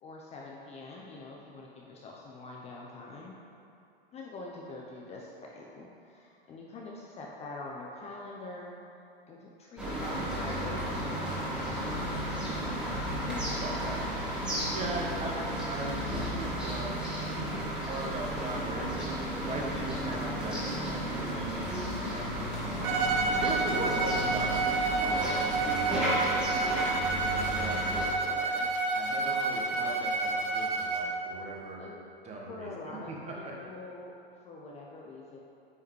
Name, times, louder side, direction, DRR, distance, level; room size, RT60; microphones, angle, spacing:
voice 1, 0.0-3.4 4.1-8.8 9.3-13.6 18.5-18.6 23.6-24.2 25.0-25.4 28.0-28.7 31.8-32.0 32.5-35.4, left 3 dB, 20° left, -2 dB, 0.7 m, -45 dB
sound 1, 9.8-28.0, equal, 5° right, 1.7 m, -33 dB
voice 2, 13.6-14.0 14.7-17.5 17.8-19.0 19.4-28.1 28.9-31.8 32.2-33.5, right 2 dB, 20° right, -2 dB, 1.3 m, -39 dB
Bowed string instrument, 22.8-31.2, right 3 dB, 55° right, 1.1 m, -29 dB
9.5 x 5.6 x 3.2 m, 2.6 s
hypercardioid pair, 105°, 30 cm